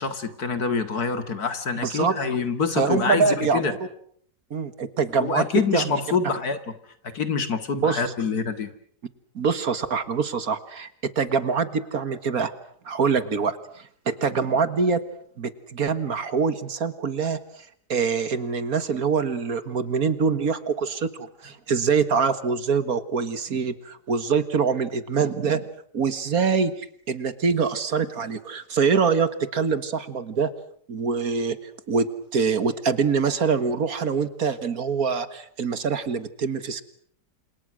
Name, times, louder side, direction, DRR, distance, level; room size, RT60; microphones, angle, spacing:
voice 1, 0.0-3.7 5.2-6.6 7.0-8.7, left 5 dB, 60° left, 10 dB, 2.5 m, -26 dB
voice 2, 1.8-2.2 2.8-3.8 4.5-5.5 5.7-6.2 7.8-8.0 9.4-12.5 12.9-15.0 15.4-25.7 25.9-30.5 30.9-31.6 31.9-36.8, right 5 dB, 60° right, 13 dB, 1.9 m, -24 dB
30.0 x 27.0 x 6.3 m, 0.62 s
omnidirectional pair, 1.8 m